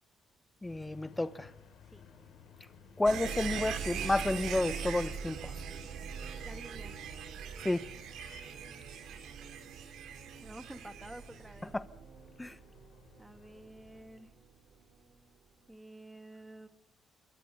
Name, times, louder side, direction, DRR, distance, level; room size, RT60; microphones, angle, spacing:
sound 1, 0.6-14.1, left 6 dB, 80° left, 6.2 m, -58 dB
voice 1, 0.6-1.5 3.0-5.5 7.6-7.8 11.7-11.8 12.4-12.6, left 2 dB, 15° left, 0.9 m, -31 dB
sound 2, 3.1-13.9 14.2-14.3, right 7 dB, 80° right, 2.9 m, -41 dB
voice 2, 6.4-6.9 10.4-11.7 13.2-14.3 15.7-16.7, right 1 dB, 10° right, 1.9 m, -50 dB
28.5 x 23.0 x 5.5 m
cardioid pair, 90°, 0 cm